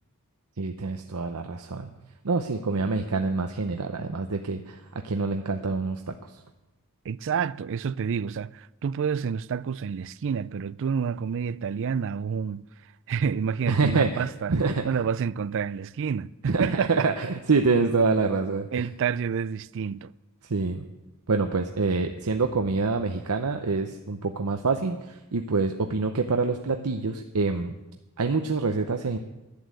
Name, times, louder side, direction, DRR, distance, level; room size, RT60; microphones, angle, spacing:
voice 1, 0.6-1.9 2.2-6.1 13.7-14.8 16.4-18.9 20.5-20.9 21.3-27.8 28.2-29.2, right 4 dB, 90° right, 0.8 m, -26 dB
voice 2, 7.0-12.6 13.1-14.6 14.8-17.1 18.7-20.1, right 6 dB, 60° right, 0.4 m, -29 dB
11.5 x 10.5 x 7.7 m
head